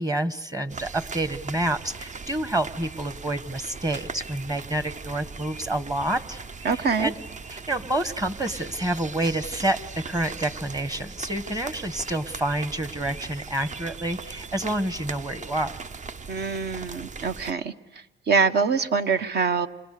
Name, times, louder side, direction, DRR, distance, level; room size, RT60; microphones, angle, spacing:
voice 1, 0.0-7.1 7.5-9.8 10.1-15.8, right 1 dB, 20° right, 11 dB, 1.5 m, -28 dB
sound 1, 0.7-17.5, right 4 dB, 40° right, 0.8 m, -39 dB
voice 2, 6.6-7.1 16.3-17.7 18.3-19.7, right 5 dB, 55° right, 9 dB, 1.2 m, -24 dB
29.5 x 26.5 x 6.8 m, 1.1 s
cardioid pair, 90°, 20 cm